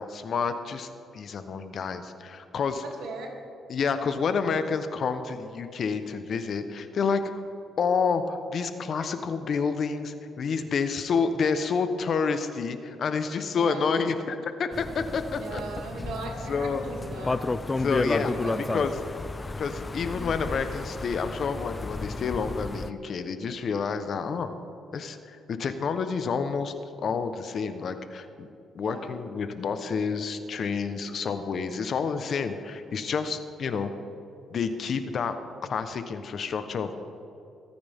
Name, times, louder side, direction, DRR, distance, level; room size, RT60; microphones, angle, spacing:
voice 1, 0.0-2.8 3.7-7.2 7.8-15.6 16.5-16.8 17.8-19.0 19.6-24.5 24.9-28.5 28.7-33.9 34.5-35.4 35.7-37.1, left 5 dB, 55° left, 9 dB, 1.0 m, -29 dB
voice 2, 3.0-3.3 4.3-4.6 13.5-13.9 15.4-17.4 18.2-18.8 28.8-29.2, right 3 dB, 80° right, 0 dB, 2.5 m, -38 dB
sound 1, 14.7-22.9, left 3 dB, 25° left, 0.5 m, -32 dB
23.0 x 9.5 x 3.6 m, 2.7 s
cardioid pair, 90°, 0 cm